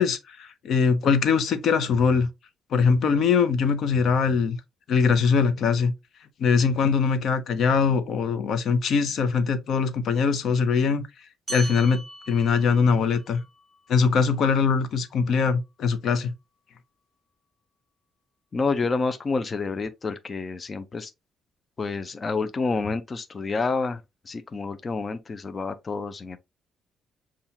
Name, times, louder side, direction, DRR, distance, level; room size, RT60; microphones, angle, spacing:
voice 1, 0.0-2.3 2.7-4.6 4.9-5.9 6.4-11.0 11.5-13.4 13.9-16.3, left 5 dB, 65° left, 0.8 m, -22 dB
sound 1, 11.5-16.3, right 3 dB, 15° right, 2.5 m, -43 dB
voice 2, 18.5-21.1 21.8-26.4, left 4 dB, 35° left, 0.5 m, -28 dB
7.0 x 2.4 x 2.8 m
cardioid pair, 90°, 0 cm